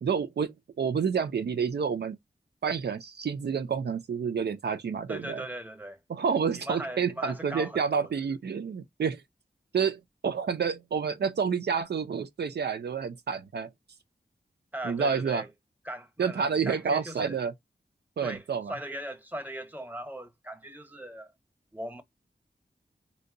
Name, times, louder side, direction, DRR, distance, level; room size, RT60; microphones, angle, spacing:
voice 1, 0.0-2.2 2.6-5.4 6.1-9.2 9.7-13.7 14.8-15.4 16.2-17.5 18.2-18.7, right 6 dB, 75° right, 0.4 m, -29 dB
voice 2, 5.1-6.0 6.5-8.1 14.7-15.5 15.8-17.4 18.2-21.3 21.7-22.0, right 1 dB, 10° right, 0.8 m, -39 dB
2.7 x 2.2 x 3.7 m
cardioid pair, 45°, 17 cm